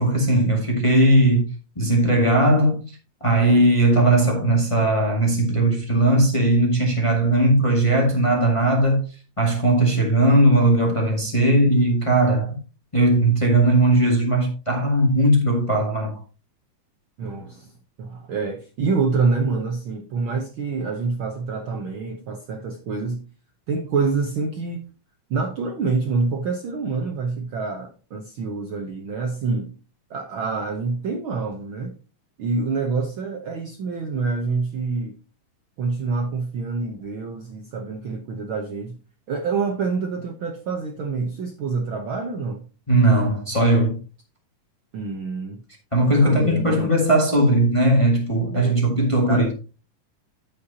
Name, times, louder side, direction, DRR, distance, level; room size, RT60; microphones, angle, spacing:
voice 1, 0.0-1.5 1.7-9.0 9.4-12.6 12.9-16.2 42.9-44.0 45.9-49.5, right 1 dB, 15° left, 1.3 m, -18 dB
voice 2, 17.2-17.7 18.0-23.2 23.7-24.8 25.3-29.7 30.1-32.0 32.4-35.2 35.8-39.0 39.3-42.6 44.9-45.6 46.2-46.9 48.5-48.9 49.3-49.4, right 4 dB, 85° right, 1.1 m, -26 dB
14.5 x 5.6 x 2.8 m
omnidirectional pair, 3.7 m